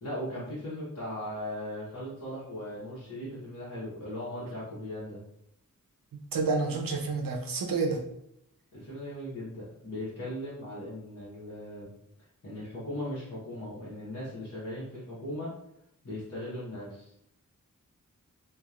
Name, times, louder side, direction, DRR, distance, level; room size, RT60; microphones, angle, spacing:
voice 1, 0.0-5.2 8.7-11.9 12.4-15.5 16.0-17.1, left 1 dB, 50° left, -9 dB, 1.1 m, -38 dB
voice 2, 6.1-8.0, right 4 dB, 90° right, 3 dB, 0.6 m, -29 dB
2.9 x 2.4 x 2.4 m, 0.75 s
wide cardioid pair, 75°, 33 cm